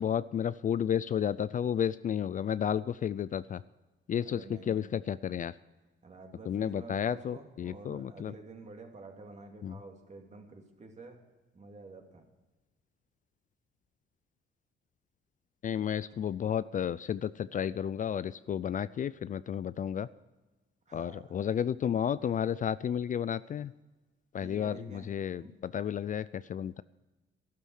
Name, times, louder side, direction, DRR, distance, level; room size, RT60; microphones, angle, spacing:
voice 1, 0.0-3.6 4.1-4.4 4.7-5.5 6.5-8.3 9.6-9.7 15.6-20.1 20.9-23.7 24.3-24.7 25.1-25.4 25.7-26.2 26.5-26.8, left 9 dB, 40° left, 17 dB, 0.4 m, -32 dB
voice 2, 4.1-4.9 6.0-11.3 11.5-12.3 16.1-16.2 20.9-21.4 24.4-25.5, right 3 dB, 35° right, 3 dB, 2.7 m, -49 dB
12.5 x 12.0 x 6.4 m, 1.1 s
cardioid pair, 90°, 20 cm